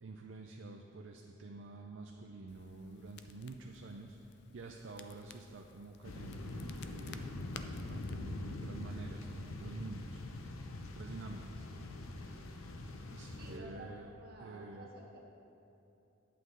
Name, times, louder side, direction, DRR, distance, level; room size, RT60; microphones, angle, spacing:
voice 1, 0.0-4.2 4.5-7.3 7.9-10.2 10.9-11.7 12.5-14.1 14.4-14.9, right 3 dB, 65° right, 2 dB, 0.5 m, -48 dB
Crackle, 2.5-10.5, left 5 dB, 55° left, 0.4 m, -55 dB
sound 1, 6.0-13.6, left 2 dB, 90° left, 0.7 m, -44 dB
voice 2, 13.4-15.2, right 1 dB, 50° right, -2 dB, 1.5 m, -51 dB
9.3 x 8.4 x 3.9 m, 2.9 s
head